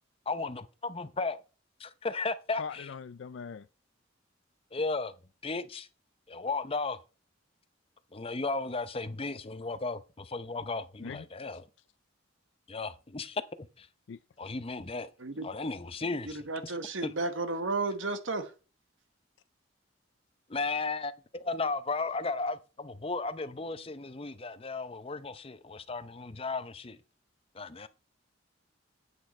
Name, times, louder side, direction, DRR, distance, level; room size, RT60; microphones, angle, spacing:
voice 1, 0.3-1.4 1.8-2.9 4.7-5.1 5.4-5.9 6.3-7.0 8.1-11.7 12.7-13.4 13.8-13.9 14.4-15.1 15.4-16.7 17.0-17.1 20.5-27.0 27.5-27.9, left 3 dB, 30° left, 0.7 m, -35 dB
voice 2, 2.6-3.6 11.0-11.2 14.1-14.2, left 6 dB, 65° left, 0.4 m, -40 dB
voice 3, 16.3-18.5, right 3 dB, 75° right, 1.3 m, -33 dB
8.9 x 8.3 x 4.3 m
head